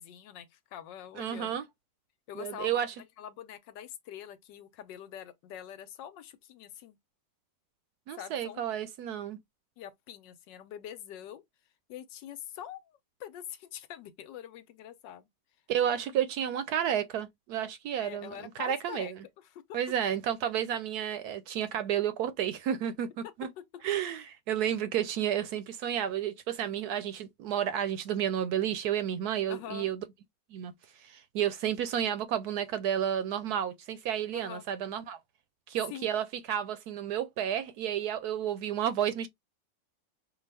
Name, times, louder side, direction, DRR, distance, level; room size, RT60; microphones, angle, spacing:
voice 1, 0.0-1.6 2.3-2.8 3.2-7.0 8.1-8.6 9.8-11.4 11.9-15.3 18.0-19.8 23.6-23.8 29.5-29.9 34.3-34.6 35.9-36.1, left 10 dB, 80° left, 1.3 m, -44 dB
voice 2, 1.2-1.6 2.4-2.9 8.1-9.4 15.7-18.3 18.6-19.1 19.7-23.5 23.8-30.0 30.5-30.7 31.0-35.2 35.7-39.3, right 10 dB, 70° right, 1.0 m, -31 dB
5.8 x 2.3 x 3.3 m
omnidirectional pair, 2.0 m